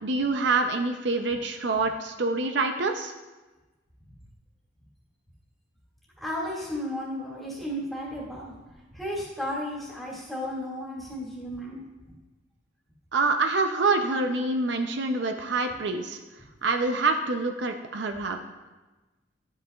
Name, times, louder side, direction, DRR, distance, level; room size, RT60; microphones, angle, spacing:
voice 1, 0.0-3.1 13.1-16.2 16.6-18.4, right 3 dB, 70° right, 5 dB, 0.6 m, -26 dB
voice 2, 6.2-8.5 8.9-11.8, equal, ahead, -6 dB, 2.1 m, -34 dB
12.0 x 8.0 x 2.4 m, 1.2 s
head